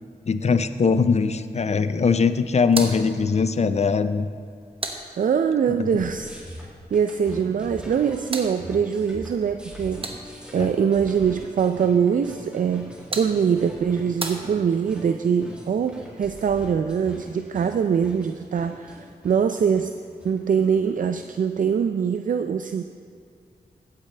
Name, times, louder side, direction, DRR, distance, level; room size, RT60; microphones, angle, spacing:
voice 1, 0.2-4.3 5.7-6.0 10.6-10.7, left 5 dB, 45° left, 12 dB, 0.5 m, -21 dB
sound 1, 2.6-5.7 7.7-10.6 12.6-15.1, right 2 dB, 35° right, 1.1 m, -37 dB
voice 2, 5.2-6.4 6.9-10.1 10.5-19.9 20.2-22.8, right 7 dB, 55° right, 8 dB, 0.4 m, -23 dB
sound 2, 6.0-21.3, equal, 5° right, 2.3 m, -42 dB
15.0 x 8.8 x 3.3 m, 2.3 s
cardioid pair, 65°, 16 cm